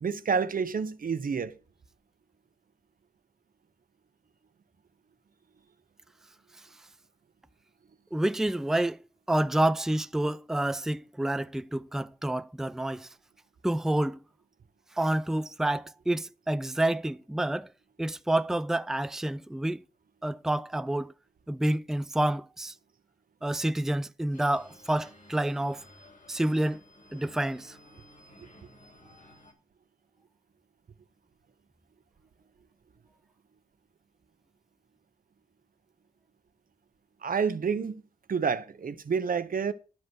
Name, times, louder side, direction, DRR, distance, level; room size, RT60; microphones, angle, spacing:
voice 1, 0.0-1.5 37.2-38.0 38.3-39.7, right 6 dB, 80° right, 0.9 m, -29 dB
voice 2, 8.1-9.0 9.3-13.1 13.6-14.2 15.0-17.7 18.0-19.8 20.2-21.1 21.5-22.7 23.4-25.8 26.3-26.8 27.1-27.8, right 1 dB, 5° right, 0.4 m, -28 dB
sound 1, 24.3-29.5, left 1 dB, 65° left, 2.9 m, -54 dB
12.0 x 5.3 x 6.1 m
wide cardioid pair, 75°, 14 cm